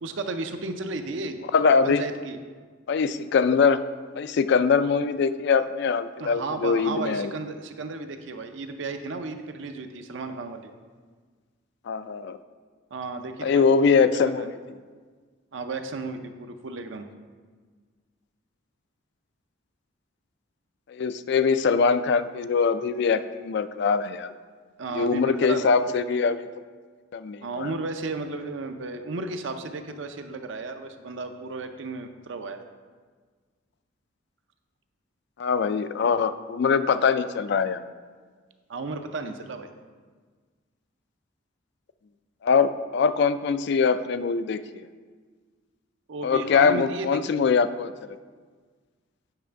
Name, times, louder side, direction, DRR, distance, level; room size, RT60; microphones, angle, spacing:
voice 1, 0.0-1.4 1.8-2.4 6.2-10.7 12.9-14.5 15.5-17.1 24.8-26.0 27.4-32.6 38.7-39.7 46.1-47.4, right 3 dB, 65° right, 7 dB, 0.5 m, -34 dB
voice 2, 1.5-2.0 2.9-3.8 4.2-7.3 11.9-12.4 13.4-14.5 20.9-24.3 24.9-26.4 27.1-27.7 35.4-37.8 42.4-44.8 46.2-48.2, left 5 dB, 55° left, 12 dB, 0.3 m, -23 dB
8.7 x 3.3 x 5.6 m, 1.5 s
head